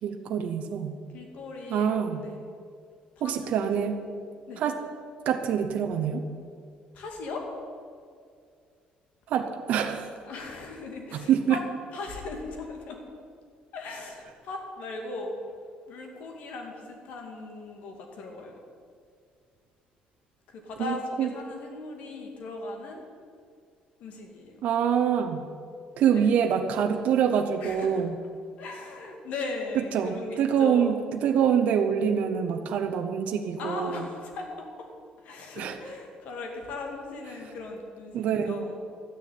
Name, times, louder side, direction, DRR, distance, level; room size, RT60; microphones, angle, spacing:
voice 1, 0.0-1.0 1.7-2.2 3.2-4.0 4.6-4.7 5.3-6.2 9.3-10.1 11.3-11.6 20.8-21.3 24.6-25.4 26.0-28.2 29.8-33.9 35.6-35.8 38.1-38.6, right 8 dB, 55° right, 5 dB, 0.8 m, -25 dB
voice 2, 1.1-1.9 2.2-2.4 3.2-3.7 4.5-4.6 6.9-7.5 10.3-11.6 11.9-13.0 13.7-15.3 15.9-18.6 20.5-23.0 24.0-24.6 25.9-26.3 27.6-28.1 28.6-30.9 33.6-34.9 35.2-38.8, left 3 dB, 55° left, 2 dB, 2.3 m, -38 dB
12.5 x 6.9 x 9.3 m, 2.2 s
cardioid pair, 180°, 3 cm